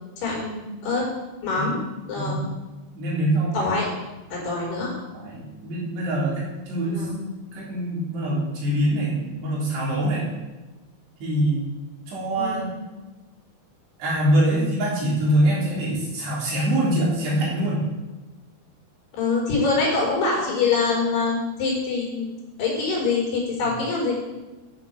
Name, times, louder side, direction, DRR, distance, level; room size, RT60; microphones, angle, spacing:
voice 1, 0.2-1.0 1.4-1.8 2.1-2.4 3.5-3.9 4.3-4.9 6.8-7.1 12.4-12.7 19.1-24.1, left 4 dB, 75° left, -3 dB, 6.5 m, -25 dB
voice 2, 2.1-2.5 2.9-3.6 5.1-7.0 7.5-10.3 11.2-11.7 12.1-12.7 14.0-17.8 23.7-23.8, right 1 dB, 80° right, -5 dB, 6.1 m, -24 dB
14.0 x 7.3 x 7.6 m, 1.2 s
omnidirectional pair, 4.7 m